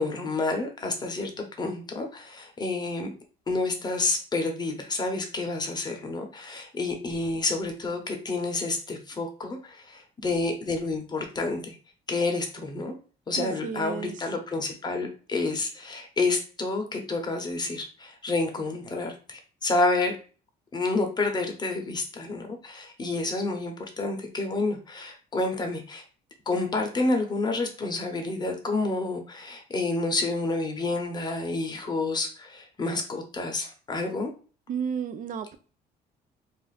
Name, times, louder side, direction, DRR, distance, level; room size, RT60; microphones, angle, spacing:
voice 1, 0.0-3.1 3.5-11.7 12.1-12.9 13.3-20.1 20.7-26.0 26.5-34.3, left 3 dB, 25° left, 0.8 m, -29 dB
voice 2, 13.4-14.1 34.7-35.6, right 7 dB, 50° right, 0.4 m, -32 dB
2.5 x 2.4 x 4.0 m
cardioid pair, 110°, 17 cm